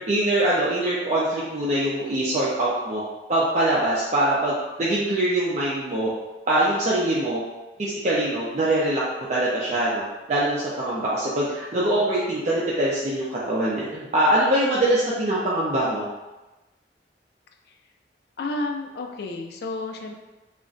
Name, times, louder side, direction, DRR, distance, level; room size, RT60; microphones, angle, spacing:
voice 1, 0.1-3.0 3.3-6.1 6.5-7.4 7.8-9.0 9.3-10.0 10.3-16.0, right 1 dB, 40° right, -7 dB, 0.5 m, -23 dB
voice 2, 18.4-20.1, left 2 dB, 60° left, 3 dB, 0.3 m, -31 dB
2.4 x 2.1 x 3.7 m, 1.1 s
head